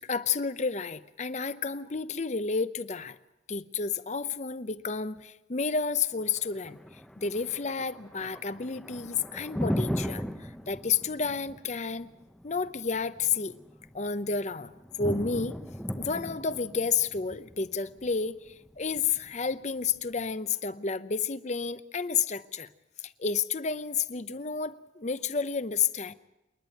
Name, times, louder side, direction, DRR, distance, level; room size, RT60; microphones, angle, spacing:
voice 1, 0.0-3.2 3.5-6.8 7.2-12.1 12.4-13.6 13.9-14.7 15.0-15.6 16.0-22.7 23.0-26.1, left 5 dB, 40° left, 14 dB, 0.7 m, -31 dB
Thunder, 6.2-20.2, equal, 5° left, 0.7 m, -38 dB
28.0 x 11.0 x 9.2 m, 0.98 s
head